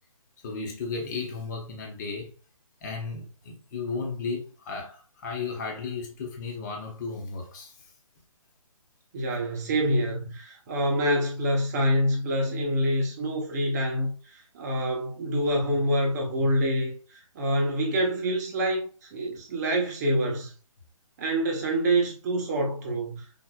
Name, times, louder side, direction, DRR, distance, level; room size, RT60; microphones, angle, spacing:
voice 1, 0.4-2.3 2.8-7.7, left 4 dB, 30° left, 1.2 m, -34 dB
voice 2, 9.1-20.5 21.2-23.2, equal, 30° right, 1.0 m, -26 dB
4.4 x 3.9 x 2.4 m
figure-of-eight pair, 150°, 18 cm